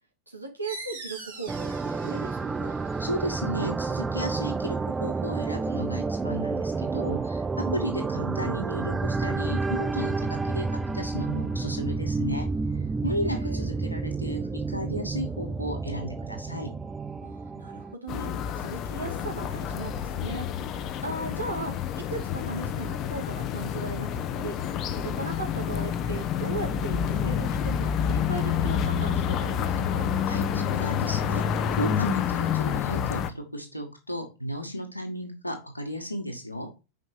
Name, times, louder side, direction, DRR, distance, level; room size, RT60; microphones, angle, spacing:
voice 1, 0.3-2.7 7.6-8.1 13.0-13.7 17.2-20.5 21.0-24.6 24.9-30.1, right 3 dB, 85° right, 2 dB, 1.9 m, -38 dB
sound 1, 0.6-5.9, right 3 dB, 60° right, 2.3 m, -45 dB
sound 2, 1.5-17.9, right 4 dB, 10° right, 0.3 m, -30 dB
voice 2, 3.0-12.5 13.0-16.7 30.3-31.5 31.8-36.7, equal, 90° left, 2 dB, 1.8 m, -34 dB
sound 3, 18.1-33.3, left 8 dB, 35° left, 0.7 m, -28 dB
5.4 x 5.1 x 5.0 m, 0.29 s
figure-of-eight pair, 90°, 0 cm